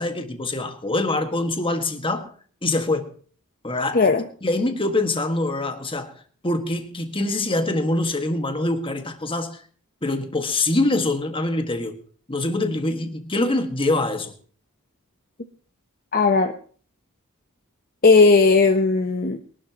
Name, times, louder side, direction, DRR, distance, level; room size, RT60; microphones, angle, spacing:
voice 1, 0.0-2.3 2.6-3.1 3.6-4.1 4.4-6.1 6.4-9.6 10.0-12.0 12.3-14.3, left 2 dB, 25° left, 1.8 m, -24 dB
voice 2, 3.9-4.2 16.1-16.5 18.0-19.4, left 4 dB, 40° left, 0.9 m, -16 dB
23.0 x 12.0 x 3.0 m
head